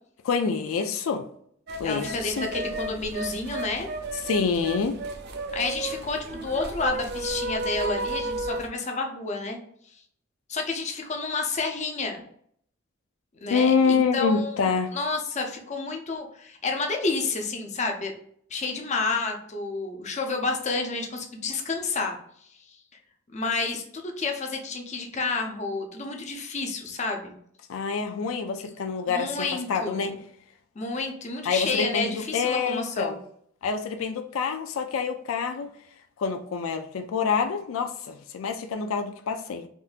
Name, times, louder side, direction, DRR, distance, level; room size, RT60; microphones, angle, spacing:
voice 1, 0.2-1.2 1.8-2.5 4.3-5.0 13.5-14.9 27.7-30.2 31.4-33.2 33.6-35.7 36.2-39.7, left 5 dB, 85° left, 0.4 m, -26 dB
sound 1, 1.7-8.7, right 2 dB, 55° right, 0.5 m, -33 dB
voice 2, 1.8-3.9 5.5-9.6 10.5-12.2 13.4-14.6 14.9-18.1 18.5-22.2 22.7-22.8 23.3-27.4 29.1-30.1 30.8-33.2, left 3 dB, 35° left, 0.6 m, -30 dB
3.6 x 2.7 x 2.4 m
head